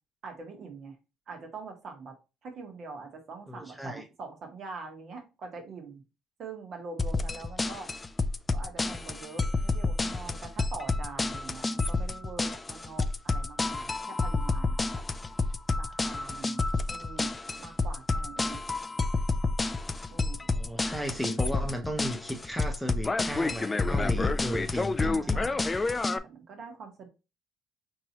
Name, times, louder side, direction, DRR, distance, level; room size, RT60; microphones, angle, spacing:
voice 1, 0.2-0.9 1.3-2.1 2.4-6.0 6.4-7.9 8.5-15.0 15.8-16.6 16.9-17.3 17.6-18.6 20.1-20.5 25.0-27.1, right 4 dB, 55° right, 1.2 m, -44 dB
voice 2, 3.5-4.0 20.5-25.5, equal, 5° left, 0.7 m, -35 dB
sound 1, 7.0-26.2, left 3 dB, 20° left, 0.3 m, -29 dB
4.6 x 2.8 x 2.9 m
cardioid pair, 95°, 0 cm